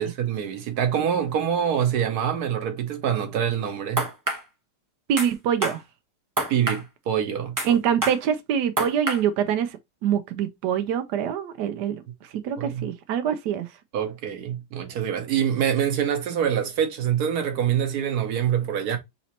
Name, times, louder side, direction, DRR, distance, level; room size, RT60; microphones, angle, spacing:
voice 1, 0.0-4.1 6.5-7.8 12.6-12.9 13.9-19.0, right 9 dB, 55° right, 1.2 m, -25 dB
sound 1, 4.0-4.4 5.2-5.3 5.6-5.8 6.4-6.8 7.6-7.7 8.0-8.2 8.8-9.2, right 1 dB, 25° right, 0.3 m, -26 dB
voice 2, 5.1-5.8 7.6-12.0 12.4-13.7, right 9 dB, 85° right, 0.9 m, -25 dB
4.0 x 2.8 x 4.3 m
omnidirectional pair, 2.4 m